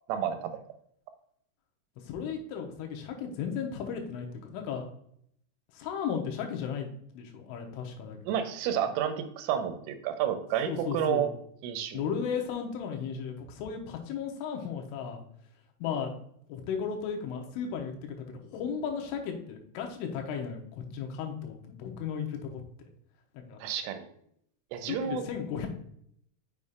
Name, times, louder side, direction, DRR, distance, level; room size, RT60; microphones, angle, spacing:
voice 1, 0.1-0.6 8.3-11.3 11.6-12.0 23.6-24.1 24.7-25.2, right 9 dB, 80° right, 8 dB, 3.1 m, -30 dB
voice 2, 2.1-4.3 4.5-4.9 5.7-8.2 10.7-11.3 11.9-15.2 15.8-16.1 16.5-22.6 23.3-23.6 24.9-25.7, left 7 dB, 80° left, 3 dB, 3.3 m, -35 dB
7.1 x 6.5 x 2.4 m, 0.69 s
omnidirectional pair, 5.8 m